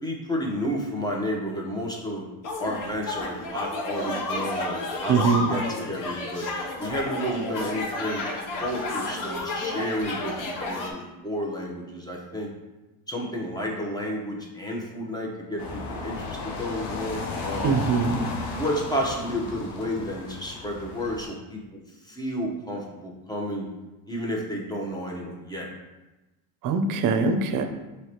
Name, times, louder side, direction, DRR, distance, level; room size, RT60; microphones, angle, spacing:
voice 1, 0.0-2.2 2.6-6.5 6.8-8.3 8.6-12.5 13.1-17.7 18.5-21.6 22.0-23.7 24.1-25.7, equal, 10° left, -2 dB, 1.0 m, -31 dB
sound 1, 2.4-10.9, left 2 dB, 50° left, 0.9 m, -31 dB
voice 2, 5.1-5.5 17.6-18.3 26.6-27.6, right 5 dB, 55° right, 7 dB, 0.6 m, -22 dB
sound 2, 15.6-21.2, left 3 dB, 85° left, 0.9 m, -34 dB
4.7 x 3.2 x 3.0 m, 1.1 s
supercardioid pair, 85°, 40 cm